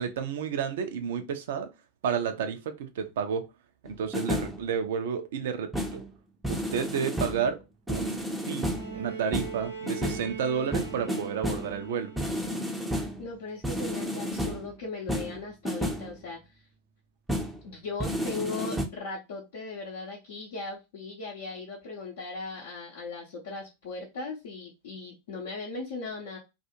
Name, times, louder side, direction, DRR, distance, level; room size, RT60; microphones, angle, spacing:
voice 1, 0.0-1.7 2.0-3.4 3.8-6.0 6.5-7.6 7.9-12.1, right 7 dB, 55° right, 0.5 m, -31 dB
sound 1, 3.9-4.6 5.7-6.1 6.4-7.5 7.9-9.0 9.3-10.3 10.7-11.8 12.2-13.2 13.6-14.7 15.1-16.1 17.3-17.6 18.0-18.9, equal, 5° right, 0.5 m, -31 dB
Bowed string instrument, 8.6-12.6 13.9-14.0, right 5 dB, 80° right, 1.0 m, -41 dB
voice 2, 13.2-16.6 17.6-26.4, left 3 dB, 60° left, 0.7 m, -38 dB
2.4 x 2.4 x 2.8 m
figure-of-eight pair, 90°, 0 cm